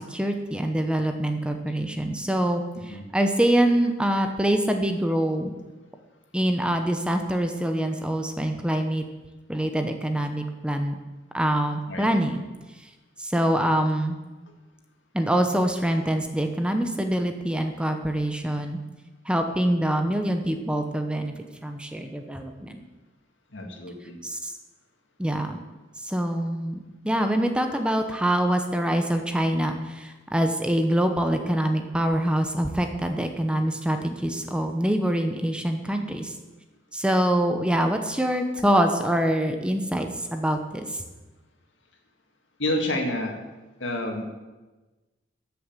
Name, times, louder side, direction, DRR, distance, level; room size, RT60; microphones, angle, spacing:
voice 1, 0.0-5.5 6.3-9.0 9.5-11.0 11.3-12.4 13.2-14.2 15.1-18.8 19.2-21.3 21.6-22.8 24.2-24.5 25.2-25.6 26.0-36.3 36.9-41.0, right 1 dB, 5° right, 5 dB, 0.9 m, -25 dB
voice 2, 23.5-24.2 42.6-43.4 43.8-44.2, left 1 dB, 80° left, 2 dB, 2.2 m, -28 dB
13.5 x 7.0 x 7.4 m, 1.2 s
head